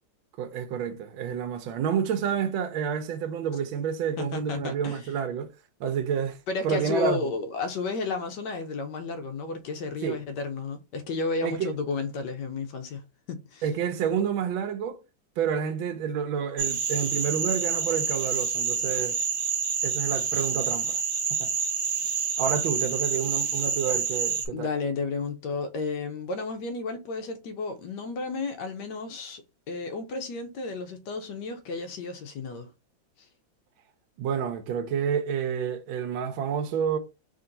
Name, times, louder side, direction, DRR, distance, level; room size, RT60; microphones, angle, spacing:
voice 1, 0.4-5.5 5.8-6.4 6.6-7.2 10.0-10.2 11.4-11.7 13.6-15.0 15.4-19.2 19.8-21.0 21.4-21.5 22.4-24.7 34.2-37.0, right 7 dB, 85° right, 1.4 m, -29 dB
voice 2, 4.2-5.0 6.5-13.0 13.3-13.6 24.5-29.4 29.7-32.7, left 4 dB, 70° left, 1.1 m, -32 dB
sound 1, 16.6-24.5, right 6 dB, 55° right, 0.7 m, -28 dB
3.8 x 2.9 x 3.8 m
omnidirectional pair, 2.1 m